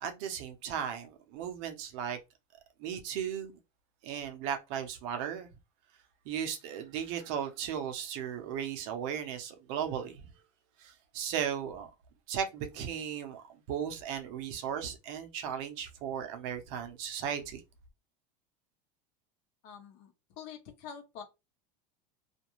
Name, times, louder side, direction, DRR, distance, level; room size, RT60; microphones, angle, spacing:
voice 1, 0.0-2.2 2.8-3.6 4.0-5.5 6.3-10.3 10.8-11.9 12.3-17.6, right 8 dB, 65° right, 0.8 m, -36 dB
voice 2, 19.6-21.2, left 7 dB, 60° left, 0.8 m, -46 dB
2.5 x 2.2 x 3.0 m
supercardioid pair, 130°, 18 cm